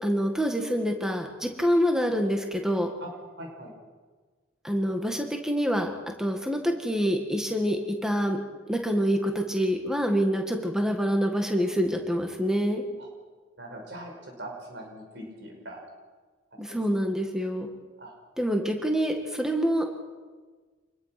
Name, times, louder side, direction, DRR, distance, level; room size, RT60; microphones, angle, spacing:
voice 1, 0.0-2.9 4.6-5.9 6.2-8.4 8.7-12.8 16.6-17.7 18.4-19.9, equal, 5° right, 3 dB, 2.0 m, -26 dB
voice 2, 3.4-3.7 13.0-13.1 13.6-15.8 16.5-17.1 18.0-18.1, right 1 dB, 55° right, 1 dB, 5.7 m, -42 dB
27.0 x 21.0 x 6.1 m, 1.4 s
head